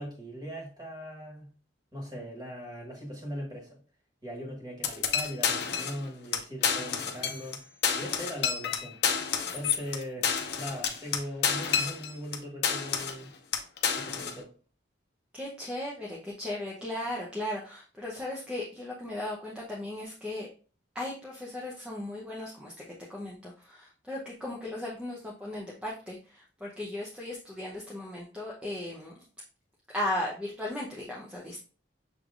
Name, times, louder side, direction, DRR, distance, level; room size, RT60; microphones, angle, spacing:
voice 1, 0.0-1.5 1.9-3.8 4.2-9.2 9.5-13.3 13.9-14.5, equal, 20° right, -1 dB, 1.5 m, -40 dB
sound 1, 4.8-6.0 6.3-6.4 6.6-7.6 7.8-12.4 12.6-13.2 13.5-14.4, left 7 dB, 60° left, 0.6 m, -29 dB
voice 2, 15.3-20.5 20.9-22.7 23.1-29.1 29.9-31.6, left 1 dB, 5° right, -4 dB, 0.6 m, -36 dB
6.4 x 3.2 x 2.4 m, 0.38 s
head